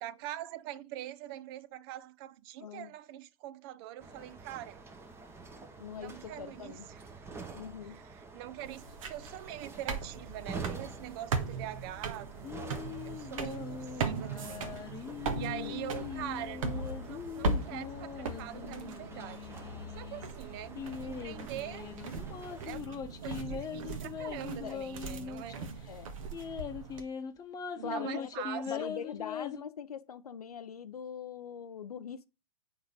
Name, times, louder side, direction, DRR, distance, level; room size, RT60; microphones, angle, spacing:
voice 1, 0.0-4.8 6.0-7.3 7.8-12.8 13.0-14.7 15.3-19.5 19.9-22.0 22.6-25.6 27.8-28.9, right 13 dB, 40° right, 0.6 m, -43 dB
voice 2, 2.6-2.9 5.8-6.9 7.5-8.0 15.4-15.8 24.6-24.8 25.8-26.1 27.8-28.3 28.7-32.3, left 7 dB, 80° left, 0.5 m, -42 dB
sound 1, 4.0-22.7, right 4 dB, 15° right, 1.0 m, -48 dB
sound 2, 8.6-27.0, right 3 dB, 60° right, 1.5 m, -39 dB
sound 3, 12.4-20.3 20.8-25.7 25.9-26.0 26.3-29.6, left 7 dB, 20° left, 0.9 m, -41 dB
8.0 x 4.8 x 5.1 m
hypercardioid pair, 110°, 19 cm